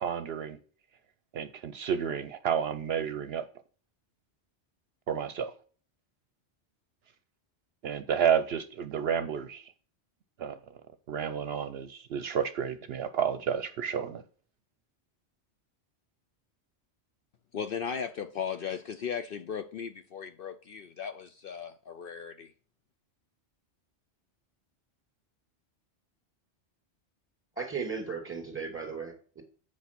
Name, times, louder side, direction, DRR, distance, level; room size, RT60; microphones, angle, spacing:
voice 1, 0.0-0.6 1.3-3.5 5.1-5.5 7.8-9.7 10.4-10.6 11.1-14.2, right 8 dB, 65° right, 11 dB, 0.8 m, -30 dB
voice 2, 17.5-22.5, left 7 dB, 60° left, 9 dB, 0.7 m, -37 dB
voice 3, 27.6-29.4, right 5 dB, 10° right, 2 dB, 2.3 m, -36 dB
8.2 x 4.8 x 6.0 m, 0.42 s
omnidirectional pair, 1.2 m